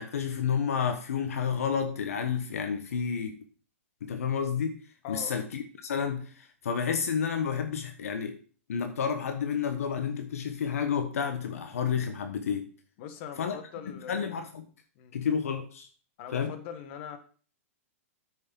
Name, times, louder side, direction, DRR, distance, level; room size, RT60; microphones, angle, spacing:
voice 1, 0.0-3.4 4.0-4.8 5.1-8.4 8.7-12.7 13.4-13.6 14.1-14.7 15.1-15.9 16.3-16.5, left 7 dB, 75° left, 7 dB, 1.2 m, -30 dB
voice 2, 5.0-5.4 13.0-14.3 14.9-15.1 16.2-17.2, left 8 dB, 50° left, 8 dB, 1.6 m, -42 dB
9.0 x 6.6 x 5.4 m, 0.42 s
hypercardioid pair, 125°, 8 cm